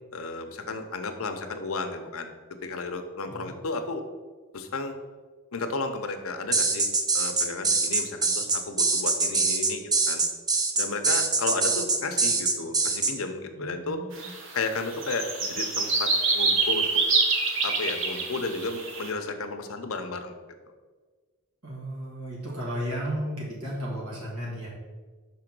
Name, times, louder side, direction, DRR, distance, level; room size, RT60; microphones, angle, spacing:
voice 1, 0.1-2.3 2.6-4.0 4.5-4.9 5.5-6.9 7.1-10.3 10.8-14.0 14.5-16.8 17.6-20.3, left 3 dB, 75° left, 7 dB, 0.7 m, -33 dB
sound 1, 6.5-13.1, right 4 dB, 15° right, 0.4 m, -24 dB
voice 2, 13.5-14.3 21.6-24.7, equal, 85° right, -5 dB, 1.7 m, -34 dB
sound 2, 14.1-14.4 14.6-19.1, right 3 dB, 60° right, 1.0 m, -26 dB
5.6 x 3.8 x 6.0 m, 1.4 s
head